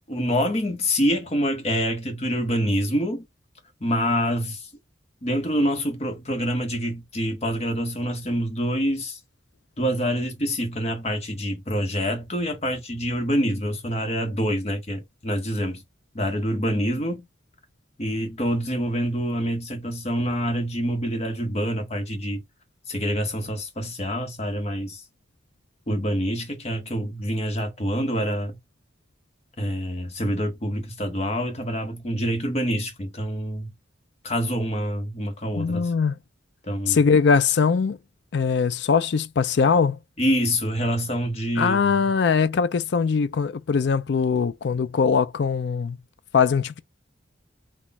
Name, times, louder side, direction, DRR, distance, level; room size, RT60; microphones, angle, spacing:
voice 1, 0.1-3.2 3.8-4.7 5.2-9.2 9.8-15.8 16.1-17.2 18.0-22.4 22.9-25.0 25.9-28.6 29.6-33.7 34.2-35.9 36.6-37.0 40.2-42.1, equal, 35° left, 1.1 m, -26 dB
voice 2, 35.6-36.2 36.9-38.0 38.3-40.0 41.6-46.0 46.3-46.8, left 5 dB, 60° left, 0.4 m, -21 dB
4.1 x 2.4 x 4.1 m
head